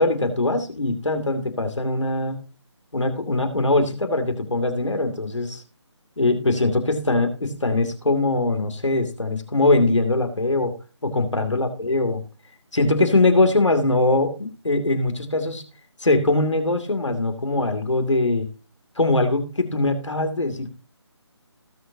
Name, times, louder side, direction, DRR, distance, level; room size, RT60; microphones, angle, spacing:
voice 1, 0.0-2.4 2.9-5.6 6.2-10.8 11.0-12.2 12.7-15.6 16.0-18.5 19.0-20.7, left 2 dB, 90° left, 6 dB, 2.7 m, -22 dB
19.0 x 6.9 x 2.8 m, 0.33 s
figure-of-eight pair, 160°, 15 cm